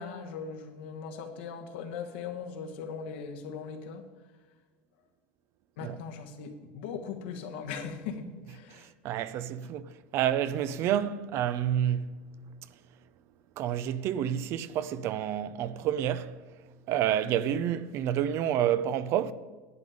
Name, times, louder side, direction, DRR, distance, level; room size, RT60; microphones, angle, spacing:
voice 1, 0.0-4.0 5.8-8.9, left 6 dB, 85° left, 1.5 m, -39 dB
voice 2, 8.7-12.1 13.6-16.3 16.9-19.3, right 10 dB, 50° right, 0.5 m, -29 dB
11.0 x 8.5 x 5.0 m
supercardioid pair, 130°, 6 cm